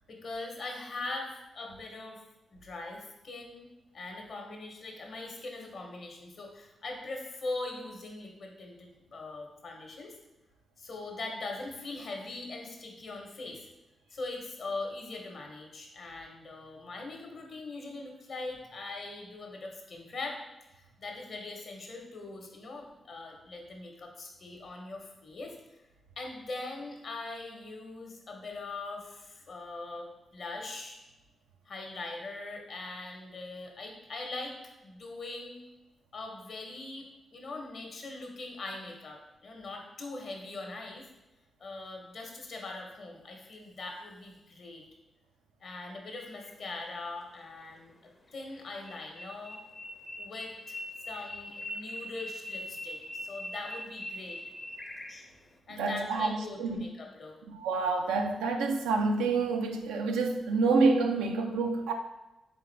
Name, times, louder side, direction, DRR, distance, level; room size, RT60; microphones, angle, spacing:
voice 1, 0.1-2.2 2.5-3.7 3.9-10.1 10.8-13.7 14.1-20.4 20.7-25.5 26.2-31.0 31.7-35.6 36.1-41.1 41.6-44.8 45.6-47.9 48.3-49.6 50.2-50.8 51.1-54.4 55.7-57.4, left 2 dB, 60° left, 1 dB, 0.9 m, -41 dB
sound 1, 46.2-46.8 48.5-55.5, left 1 dB, 40° left, 0.6 m, -42 dB
voice 2, 55.7-56.8 57.5-61.9, right 3 dB, 85° right, 4 dB, 0.4 m, -28 dB
3.8 x 3.6 x 3.2 m, 1.0 s
hypercardioid pair, 45°, 0 cm